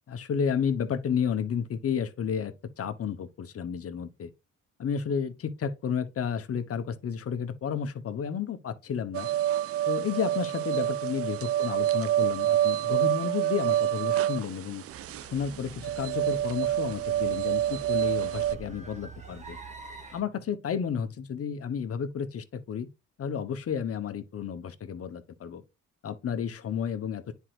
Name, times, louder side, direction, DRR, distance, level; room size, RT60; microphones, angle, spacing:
voice 1, 0.1-4.3 4.8-9.3 9.9-14.8 15.3-19.6 20.1-22.9 23.2-25.6 26.0-27.3, left 7 dB, 50° left, 1.1 m, -32 dB
sound 1, 9.1-18.6, right 12 dB, 50° right, 0.4 m, -27 dB
sound 2, 14.9-20.2, right 5 dB, 25° right, 1.7 m, -46 dB
9.8 x 4.6 x 2.5 m
cardioid pair, 90°, 30 cm